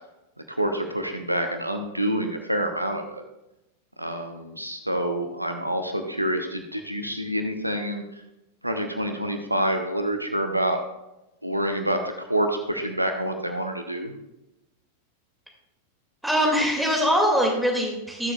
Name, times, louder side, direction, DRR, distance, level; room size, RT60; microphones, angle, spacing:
voice 1, 0.5-3.2 4.0-8.0 8.6-10.8 11.4-14.2, right 1 dB, 85° right, 6 dB, 0.9 m, -27 dB
voice 2, 16.2-18.3, equal, 5° right, -1 dB, 2.3 m, -22 dB
13.5 x 6.9 x 2.4 m, 0.92 s
figure-of-eight pair, 90°, 0 cm